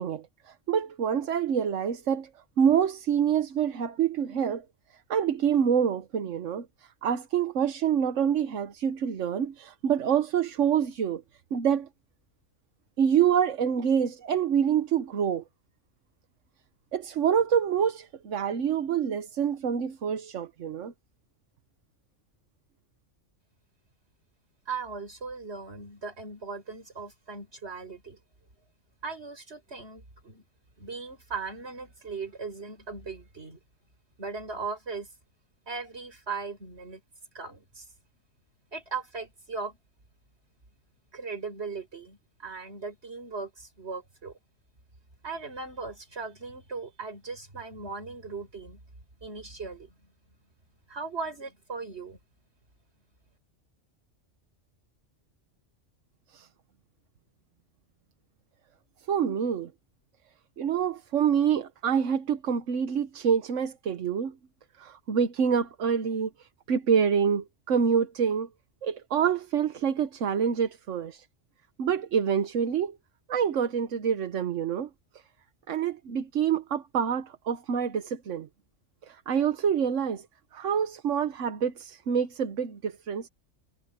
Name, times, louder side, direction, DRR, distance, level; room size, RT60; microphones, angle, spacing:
voice 1, 0.0-2.3 2.6-4.6 5.1-6.7 7.0-11.2 11.5-11.9 13.0-15.4 16.9-20.9 56.3-56.5 59.1-59.7 60.6-64.3 64.8-68.5 68.8-71.2 71.8-73.0 73.3-74.9 75.7-78.5 79.0-80.3 80.5-83.3, right 7 dB, 80° right, 1.3 m, -26 dB
voice 2, 24.7-28.2 29.0-30.4 30.8-33.6 34.2-35.1 35.7-37.0 37.3-37.9 38.7-39.8 41.1-44.4 45.2-48.8 49.2-49.9 50.9-52.2, right 4 dB, 60° right, 5.1 m, -38 dB
omnidirectional pair, 1.3 m